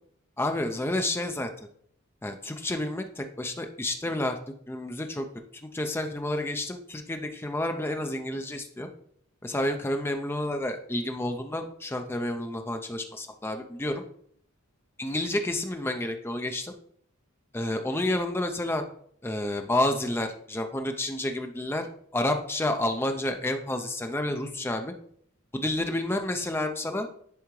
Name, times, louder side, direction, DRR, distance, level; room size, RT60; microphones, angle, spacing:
voice 1, 0.4-1.5 2.2-4.4 4.7-5.3 5.7-8.9 9.4-14.0 15.0-16.7 17.5-18.8 19.2-24.9 25.5-27.1, left 1 dB, 10° left, 5 dB, 0.5 m, -30 dB
10.5 x 3.5 x 3.1 m, 0.64 s
head